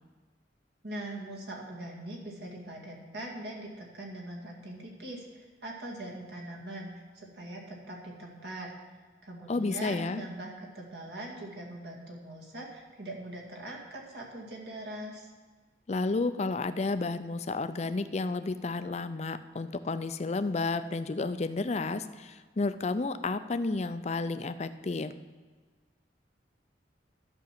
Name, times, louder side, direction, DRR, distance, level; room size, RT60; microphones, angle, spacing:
voice 1, 0.8-8.7 9.2-15.3, right 1 dB, 70° right, -1 dB, 2.2 m, -42 dB
voice 2, 9.5-10.2 15.9-25.1, left 3 dB, 40° left, 11 dB, 0.5 m, -31 dB
11.5 x 6.1 x 7.5 m, 1.4 s
head